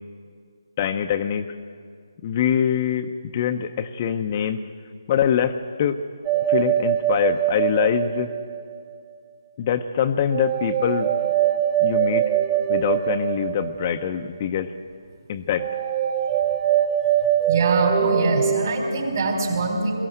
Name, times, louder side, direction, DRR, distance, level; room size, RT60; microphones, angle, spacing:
voice 1, 0.8-1.5 2.2-3.1 3.3-4.6 5.1-6.0 6.5-8.3 9.6-11.1 11.8-12.2 12.7-14.7 15.3-15.7, left 9 dB, 30° left, 7 dB, 0.7 m, -24 dB
sound 1, 6.3-8.9 10.3-14.2 15.6-18.7, right 11 dB, 20° right, 1.7 m, -23 dB
voice 2, 17.5-19.9, right 3 dB, 50° right, 2 dB, 4.6 m, -23 dB
22.0 x 16.0 x 7.9 m, 2.1 s
figure-of-eight pair, 155°, 2 cm